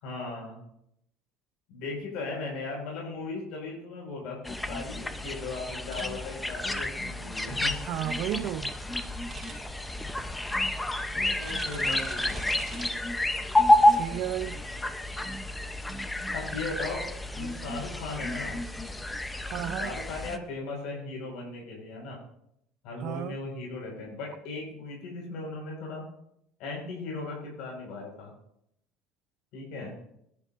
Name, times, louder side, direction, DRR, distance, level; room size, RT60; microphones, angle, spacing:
voice 1, 0.0-0.6 1.7-7.8 10.1-10.2 11.2-12.9 16.3-18.6 19.8-22.2 22.8-26.0 26.6-28.3 29.5-29.9, left 3 dB, 65° left, 5.1 m, -38 dB
sound 1, 4.4-20.4, left 1 dB, 10° left, 0.7 m, -29 dB
sound 2, 5.9-6.0 9.3-9.5 11.4-12.9, right 5 dB, 20° right, 3.1 m, -43 dB
voice 2, 7.9-8.8 13.9-14.6 19.4-19.9 23.0-23.4, right 12 dB, 55° right, 0.6 m, -33 dB
22.5 x 11.0 x 2.6 m
cardioid pair, 145°, 0 cm